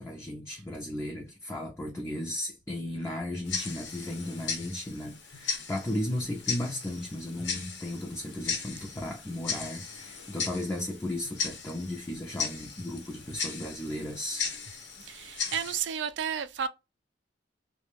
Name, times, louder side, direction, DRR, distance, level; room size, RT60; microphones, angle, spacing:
voice 1, 0.0-14.4, left 1 dB, 15° left, 0.4 m, -35 dB
Tick-tock, 3.5-15.8, left 5 dB, 75° left, 0.8 m, -37 dB
voice 2, 15.0-16.7, right 8 dB, 70° right, 0.3 m, -32 dB
2.3 x 2.1 x 3.1 m
head